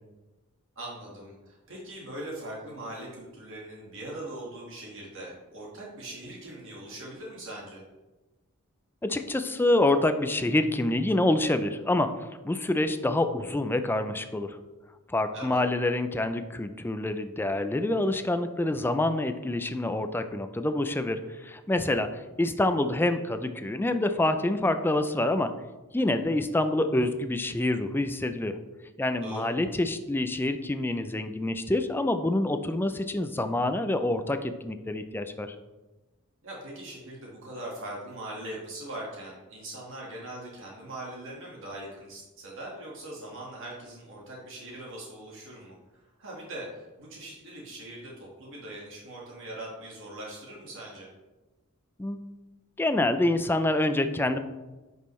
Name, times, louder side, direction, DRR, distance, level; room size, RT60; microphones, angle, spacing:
voice 1, 0.8-7.8 15.3-15.6 29.2-29.5 36.4-51.1, right 1 dB, 60° right, -3 dB, 1.7 m, -41 dB
voice 2, 9.0-14.6 15.1-25.5 25.9-28.6 29.0-35.6 52.0-52.3 52.8-54.4, left 1 dB, 10° left, 9 dB, 0.4 m, -27 dB
10.0 x 5.5 x 3.2 m, 1.1 s
head